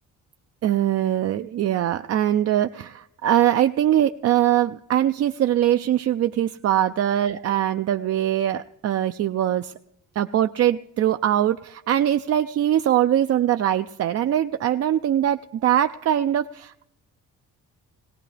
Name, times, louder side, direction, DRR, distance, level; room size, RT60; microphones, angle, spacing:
voice 1, 0.6-9.7 10.2-16.9, right 11 dB, 55° right, 8 dB, 0.4 m, -22 dB
19.5 x 17.5 x 3.3 m, 0.80 s
cardioid pair, 90°, 30 cm